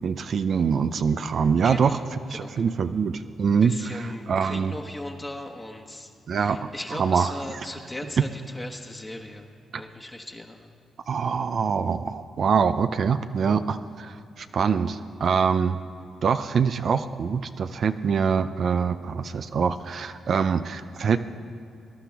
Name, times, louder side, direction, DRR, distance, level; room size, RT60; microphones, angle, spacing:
voice 1, 0.0-2.0 2.3-4.7 6.3-7.7 9.7-9.8 11.1-15.8 16.2-21.2, right 6 dB, 60° right, 10 dB, 0.4 m, -24 dB
voice 2, 1.6-2.0 2.3-2.7 3.6-10.7, left 1 dB, 20° left, 2 dB, 1.2 m, -38 dB
19.0 x 11.5 x 3.5 m, 2.5 s
supercardioid pair, 50°, 0 cm